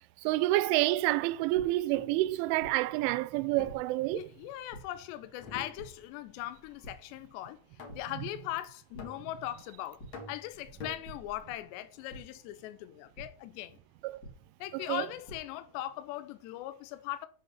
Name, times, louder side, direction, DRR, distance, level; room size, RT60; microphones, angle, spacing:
voice 1, 0.2-4.3 14.0-14.2 14.7-15.1, right 17 dB, 85° right, 3.0 m, -28 dB
sound 1, 1.5-1.6 2.6-2.7 3.7-3.8 4.7-4.8 5.8-5.9 6.8-6.9 7.4-7.6 7.9-8.0 8.9-9.0 10.0-10.1 11.0-11.1 12.1-12.2 13.2-13.3 14.2-14.3 15.0-15.4, right 1 dB, 30° left, 1.9 m, -46 dB
sound 2, 1.8-2.2 3.6-4.6 5.4-6.2 6.5-6.9 7.8-8.3 9.0-9.6 10.1-11.6, left 3 dB, 50° left, 2.4 m, -47 dB
voice 2, 4.1-7.6 8.0-10.0 10.3-13.8 14.6-17.3, left 14 dB, 75° left, 2.8 m, -40 dB
8.3 x 5.2 x 6.9 m
omnidirectional pair, 5.5 m